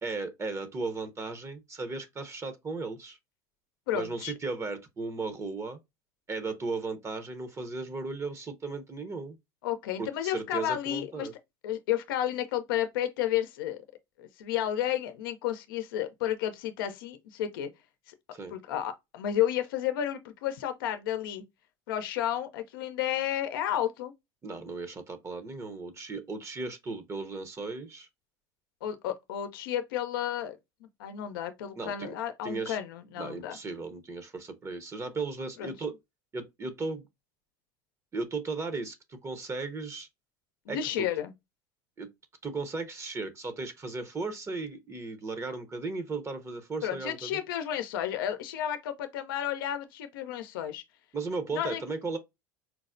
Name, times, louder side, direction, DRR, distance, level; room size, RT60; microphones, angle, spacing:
voice 1, 0.0-3.2 3.9-5.8 6.3-9.4 10.0-11.3 18.3-18.5 24.4-28.1 31.8-32.1 32.4-32.8 33.2-36.0 36.3-37.1 38.1-40.1 40.7-41.1 42.0-42.1 42.4-47.4 51.1-52.2, right 3 dB, 25° right, 0.8 m, -36 dB
voice 2, 3.9-4.3 9.6-11.3 11.6-13.8 14.2-17.7 18.1-18.2 18.5-21.4 21.9-24.1 28.8-30.6 31.0-33.6 35.6-35.7 40.7-41.3 46.8-50.8 51.5-51.8, left 11 dB, 85° left, 0.6 m, -32 dB
4.5 x 2.1 x 2.5 m
supercardioid pair, 95°, 11 cm